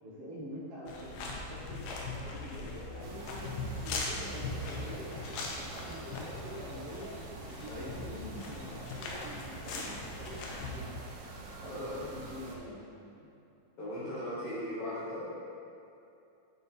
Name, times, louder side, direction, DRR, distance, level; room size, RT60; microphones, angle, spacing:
voice 1, 0.0-7.1 7.5-10.9 11.6-13.3, equal, 60° right, -9 dB, 1.8 m, -46 dB
sound 1, 0.9-10.7, left 3 dB, 80° left, 2.3 m, -40 dB
sound 2, 3.0-12.6, right 3 dB, 90° right, 2.4 m, -46 dB
voice 2, 11.6-12.0 13.8-15.3, left 1 dB, 60° left, -10 dB, 1.6 m, -38 dB
8.8 x 3.6 x 4.3 m, 2.7 s
omnidirectional pair, 3.7 m